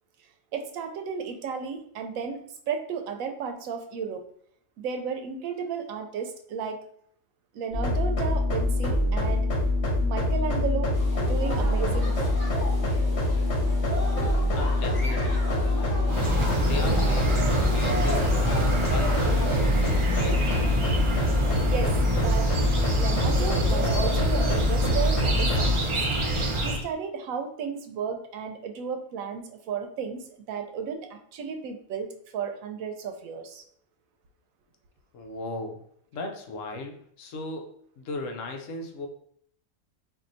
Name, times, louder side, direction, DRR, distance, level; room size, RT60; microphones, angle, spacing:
voice 1, 0.5-4.2 4.8-6.8 7.5-9.5 10.0-12.3 21.6-21.9 22.2-22.5 23.0-25.8 26.6-33.6, right 6 dB, 85° right, 5 dB, 1.0 m, -33 dB
sound 1, 7.7-25.8, left 2 dB, 55° left, 1.6 m, -25 dB
sound 2, 10.9-19.7, equal, 15° left, 1.3 m, -36 dB
voice 2, 14.6-16.1 16.6-19.6 20.1-20.5 35.1-35.8 36.1-39.1, left 2 dB, 75° left, 4 dB, 1.0 m, -37 dB
sound 3, 16.1-26.8, right 1 dB, 55° right, 0.3 m, -27 dB
4.4 x 2.6 x 2.5 m, 0.67 s
omnidirectional pair, 1.4 m